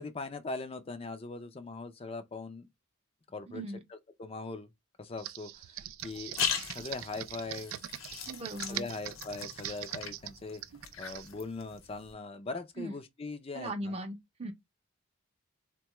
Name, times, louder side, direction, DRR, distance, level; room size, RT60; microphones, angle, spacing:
voice 1, 0.0-2.7 3.3-3.6 3.9-4.7 5.0-6.3 6.7-7.7 8.7-10.6 11.0-13.9, left 3 dB, 30° left, 0.4 m, -40 dB
voice 2, 3.5-3.8 8.2-8.9 12.8-12.9 13.5-14.5, right 1 dB, 30° right, 0.5 m, -38 dB
Computer keyboard, 5.2-11.3, right 12 dB, 85° right, 0.3 m, -42 dB
sound 1, 6.0-12.1, left 7 dB, 80° left, 0.9 m, -39 dB
3.8 x 2.2 x 2.9 m
head